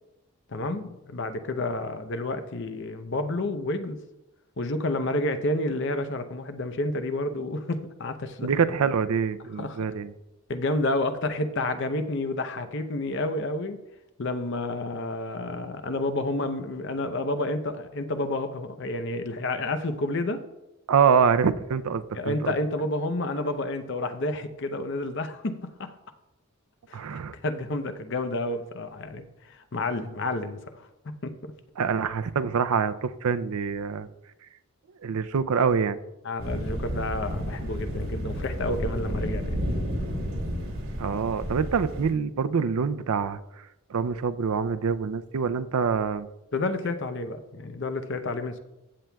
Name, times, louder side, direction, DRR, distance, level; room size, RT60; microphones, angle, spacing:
voice 1, 0.5-4.0 4.6-8.5 9.6-9.9 10.5-13.8 14.2-20.4 22.1-25.9 26.9-30.9 31.2-31.5 35.1-35.2 36.2-39.6 46.5-48.6, left 2 dB, 55° left, 9 dB, 0.7 m, -30 dB
voice 2, 8.4-10.1 20.9-22.5 26.9-27.3 31.8-34.1 35.0-36.0 41.0-43.4 43.9-46.3, right 6 dB, 85° right, 12 dB, 0.5 m, -25 dB
sound 1, 36.4-42.1, equal, 65° right, 2.5 m, -31 dB
15.0 x 7.5 x 2.3 m, 0.94 s
head